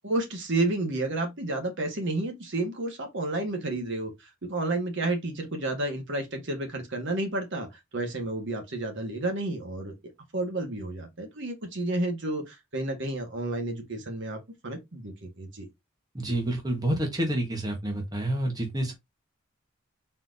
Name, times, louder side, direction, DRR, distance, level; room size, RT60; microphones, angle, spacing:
voice 1, 0.0-4.1 4.4-9.9 10.3-14.4 14.6-15.7, right 2 dB, 60° right, 1.3 m, -31 dB
voice 2, 16.1-18.9, right 1 dB, 20° right, 1.0 m, -28 dB
4.2 x 2.6 x 3.8 m
head